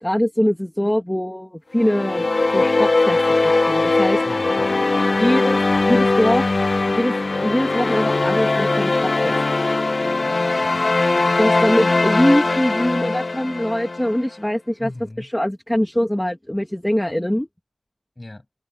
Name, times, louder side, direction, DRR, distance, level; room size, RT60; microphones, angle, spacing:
voice 1, 0.0-4.2 5.1-6.4 6.9-7.1 7.4-9.4 11.4-14.9 15.2-17.5, equal, 10° left, 1.5 m, -22 dB
sound 1, 1.8-14.2, left 3 dB, 55° left, 0.6 m, -20 dB
voice 2, 4.2-4.7 10.2-11.1 14.8-15.3 18.2-18.5, left 2 dB, 30° left, 7.4 m, -39 dB
wide cardioid pair, 55°, 0 cm